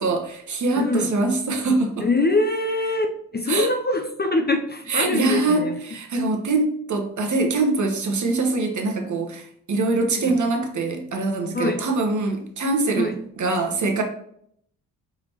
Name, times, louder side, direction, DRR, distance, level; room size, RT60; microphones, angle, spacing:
voice 1, 0.0-2.1 3.5-3.7 4.9-13.1 13.4-14.0, right 3 dB, 45° right, 3 dB, 1.1 m, -23 dB
voice 2, 0.8-1.1 2.0-5.8 10.1-10.3 11.5-11.8 13.0-13.1, left 2 dB, 25° left, 5 dB, 0.6 m, -23 dB
4.8 x 3.4 x 2.8 m, 0.69 s
supercardioid pair, 50°, 42 cm